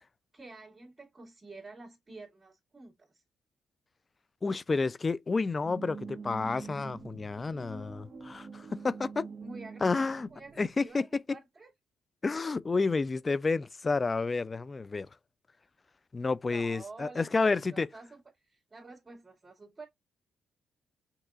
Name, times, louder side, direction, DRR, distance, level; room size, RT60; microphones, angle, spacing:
voice 1, 0.3-3.2 9.4-11.7 16.5-19.9, right 3 dB, 25° right, 2.5 m, -49 dB
voice 2, 4.4-9.3 9.8-10.3 10.6-11.0 12.2-15.1 16.1-17.9, left 4 dB, 35° left, 0.4 m, -30 dB
sound 1, 5.6-10.9, right 5 dB, 60° right, 1.1 m, -45 dB
6.4 x 2.9 x 2.4 m
supercardioid pair, 65°, 0 cm